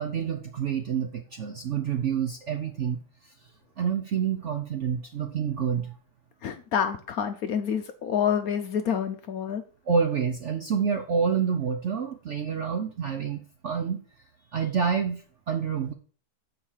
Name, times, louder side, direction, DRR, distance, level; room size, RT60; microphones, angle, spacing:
voice 1, 0.0-3.0 3.8-6.0 9.9-14.0 14.5-15.9, right 7 dB, 60° right, 5 dB, 0.7 m, -28 dB
voice 2, 6.4-9.6, left 8 dB, 65° left, 7 dB, 0.9 m, -28 dB
7.3 x 4.6 x 6.4 m, 0.41 s
omnidirectional pair, 2.0 m